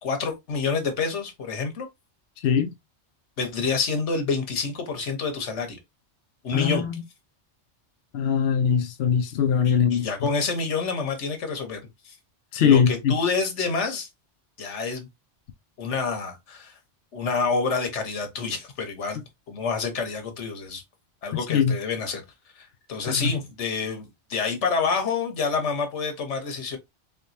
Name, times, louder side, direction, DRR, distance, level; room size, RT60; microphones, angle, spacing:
voice 1, 0.0-1.9 3.4-5.8 6.4-6.8 9.6-11.8 12.0-12.1 12.6-14.1 14.6-15.1 15.8-16.8 17.1-20.8 21.2-22.2 22.6-26.8, left 4 dB, 85° left, 1.4 m, -28 dB
voice 2, 2.4-2.7 6.5-7.0 8.1-10.1 12.5-13.1 21.5-21.8 23.1-23.3, left 7 dB, 70° left, 0.8 m, -21 dB
3.7 x 3.6 x 2.7 m
omnidirectional pair, 1.2 m